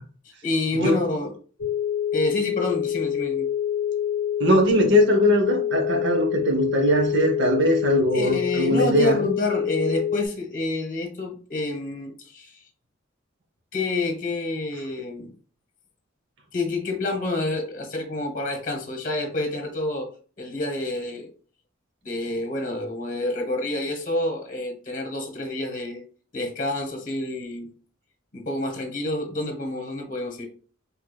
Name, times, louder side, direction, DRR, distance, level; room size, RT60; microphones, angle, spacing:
voice 1, 0.4-1.3 2.1-3.5 8.1-12.6 13.7-15.3 16.5-20.1 20.4-21.3 22.0-26.0 26.3-27.7 28.3-30.5, left 2 dB, 40° left, 3 dB, 0.9 m, -28 dB
sound 1, 1.6-10.3, left 10 dB, 75° left, 0.5 m, -26 dB
voice 2, 4.4-9.2, equal, 60° right, 3 dB, 0.7 m, -21 dB
4.5 x 2.7 x 2.2 m, 0.40 s
head